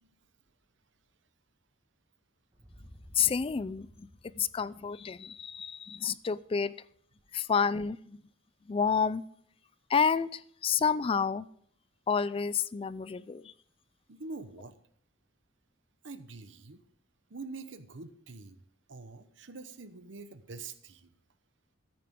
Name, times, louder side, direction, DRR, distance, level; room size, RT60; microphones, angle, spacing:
sound 1, 2.5-6.6, equal, 30° right, 1.9 m, -56 dB
voice 1, 3.2-4.1 4.3-6.7 7.3-8.2 8.7-9.2 9.9-11.5 12.1-13.5, left 6 dB, 30° left, 18 dB, 0.3 m, -29 dB
voice 2, 14.1-14.8 16.0-16.8 17.3-18.6 18.9-21.1, right 3 dB, 70° right, 11 dB, 1.0 m, -45 dB
14.0 x 9.5 x 3.7 m, 0.63 s
head